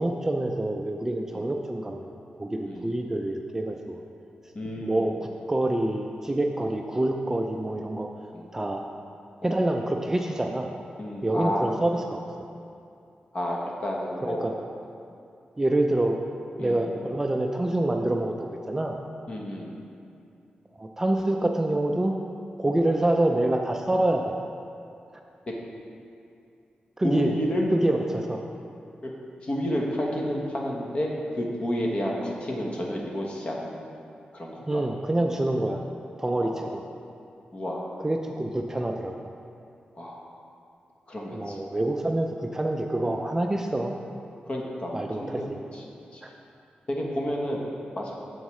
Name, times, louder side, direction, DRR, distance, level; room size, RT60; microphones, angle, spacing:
voice 1, 0.0-2.0 2.4-4.0 4.8-8.1 8.5-8.8 9.4-10.7 11.2-12.2 14.2-14.5 15.6-16.2 16.6-19.0 20.8-22.1 22.6-24.3 27.0-27.3 27.7-28.4 34.7-35.8 36.2-36.8 38.0-39.1 41.3-43.9 44.9-45.6 46.2-46.3, right 1 dB, 15° right, 2 dB, 0.4 m, -26 dB
voice 2, 4.5-5.1 6.6-6.7 8.3-8.5 9.4-9.6 11.0-11.8 13.3-14.4 16.6-16.9 19.3-19.8 25.5-25.6 27.0-27.7 29.0-29.1 29.4-33.8 34.3-34.8 36.4-36.6 37.5-37.9 39.9-40.2 41.1-41.6 43.0-43.1 44.5-45.8 46.1-46.2 46.9-47.7 47.9-48.1, equal, 35° left, -2 dB, 1.1 m, -31 dB
9.1 x 7.1 x 3.1 m, 2.5 s
wide cardioid pair, 145°, 3 cm